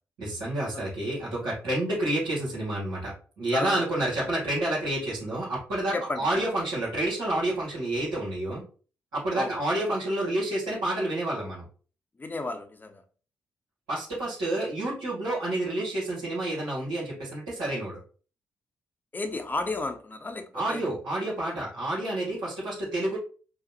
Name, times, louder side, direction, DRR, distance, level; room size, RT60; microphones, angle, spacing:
voice 1, 0.2-8.6 9.1-11.6 13.9-18.0 20.5-23.2, right 1 dB, 75° right, -10 dB, 1.9 m, -29 dB
voice 2, 3.5-3.9 5.9-6.3 9.3-9.5 12.2-13.0 19.1-21.0, left 3 dB, 25° left, 7 dB, 0.8 m, -33 dB
4.9 x 2.5 x 2.8 m, 0.39 s
hypercardioid pair, 40°, 7 cm